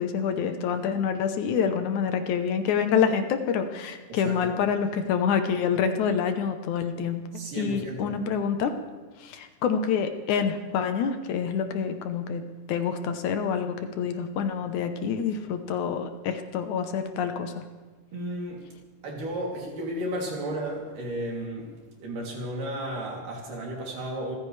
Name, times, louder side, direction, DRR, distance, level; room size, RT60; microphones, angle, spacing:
voice 1, 0.0-7.3 7.5-8.7 9.2-12.4 12.7-17.7, left 7 dB, 70° left, 7 dB, 2.2 m, -27 dB
voice 2, 4.1-4.5 7.3-8.2 18.1-18.6 19.0-24.4, right 1 dB, 80° right, -2 dB, 4.5 m, -33 dB
26.5 x 15.0 x 3.3 m, 1.3 s
omnidirectional pair, 3.7 m